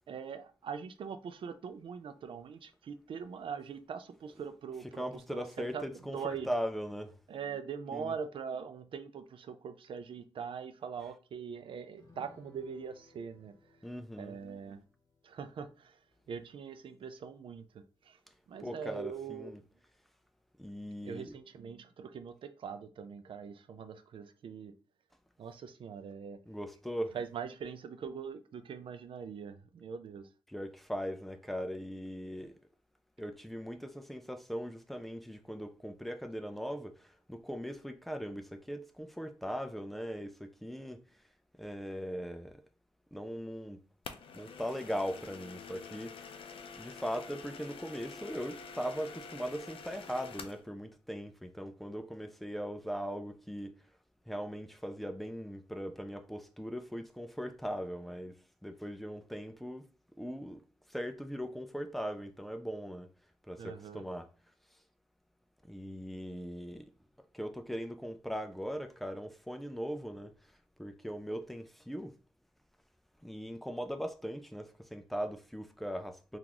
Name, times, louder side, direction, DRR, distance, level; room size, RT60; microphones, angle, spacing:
voice 1, 0.1-6.5 7.3-13.5 14.2-14.8 15.2-16.0 16.3-18.2 18.5-19.6 21.0-24.7 25.4-26.4 27.1-30.3 63.6-64.0, right 6 dB, 75° right, 0.4 m, -42 dB
voice 2, 4.8-7.1 7.9-8.1 13.8-14.4 18.6-19.6 20.6-21.3 26.5-27.2 30.5-32.5 33.2-41.0 41.6-42.6 43.1-43.8 44.3-46.5 46.8-53.8 54.3-59.9 60.2-60.6 60.9-63.1 63.5-64.3 65.6-66.9 67.3-70.3 70.8-72.1 73.2-76.4, equal, ahead, 0.3 m, -39 dB
sound 1, 12.0-18.8 19.1-19.2 19.5-19.7, left 3 dB, 40° left, 1.0 m, -66 dB
sound 2, 44.0-50.6, left 5 dB, 85° left, 0.4 m, -47 dB
3.7 x 2.4 x 2.9 m
wide cardioid pair, 145°, 9 cm